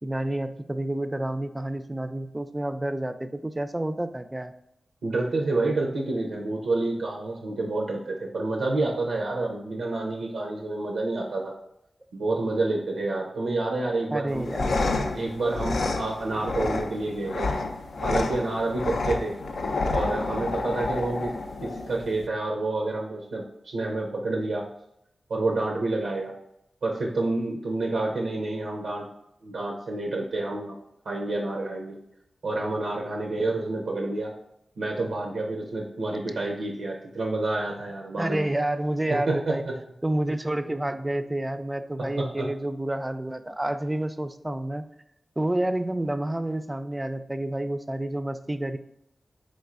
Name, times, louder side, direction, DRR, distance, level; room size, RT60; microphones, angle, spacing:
voice 1, 0.0-4.5 14.1-15.1 38.2-39.6 40.0-44.9 45.4-48.8, right 1 dB, 20° right, 10 dB, 0.3 m, -29 dB
voice 2, 5.0-11.5 12.1-14.5 15.1-17.5 18.0-19.4 19.8-21.3 21.6-24.6 25.3-26.4 26.8-29.1 29.4-30.8 31.1-32.0 32.4-34.3 34.8-38.5 39.1-39.8 42.2-42.5, right 2 dB, 90° right, 0 dB, 0.5 m, -28 dB
sound 1, 14.3-22.3, left 3 dB, 80° left, 0.3 m, -29 dB
3.8 x 3.2 x 2.4 m, 0.79 s
cardioid pair, 40°, 0 cm